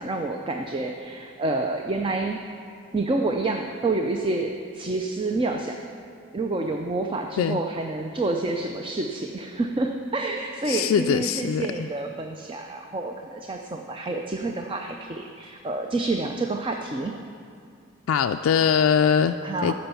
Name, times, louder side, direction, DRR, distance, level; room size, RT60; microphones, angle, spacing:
voice 1, 0.0-2.4 2.9-5.8 6.3-17.1 19.4-19.7, right 2 dB, 25° right, 3 dB, 0.5 m, -28 dB
voice 2, 10.7-11.9 18.1-19.4 19.6-19.7, left 7 dB, 80° left, 6 dB, 0.3 m, -22 dB
14.5 x 5.3 x 6.9 m, 2.3 s
head